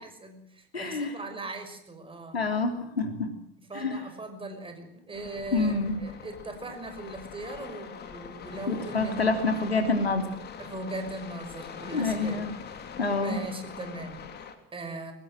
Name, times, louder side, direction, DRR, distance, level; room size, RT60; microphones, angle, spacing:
voice 1, 0.0-2.4 3.6-9.6 10.6-12.4 13.1-15.1, right 2 dB, 15° right, 7 dB, 5.8 m, -39 dB
voice 2, 0.7-1.1 2.3-3.3 3.7-4.0 5.5-5.9 8.7-10.3 11.9-12.5 13.0-13.4, left 3 dB, 80° left, 6 dB, 3.3 m, -27 dB
sound 1, 5.1-14.5, left 6 dB, 35° left, 3.4 m, -43 dB
24.0 x 19.0 x 6.5 m, 0.70 s
figure-of-eight pair, 70°, 30 cm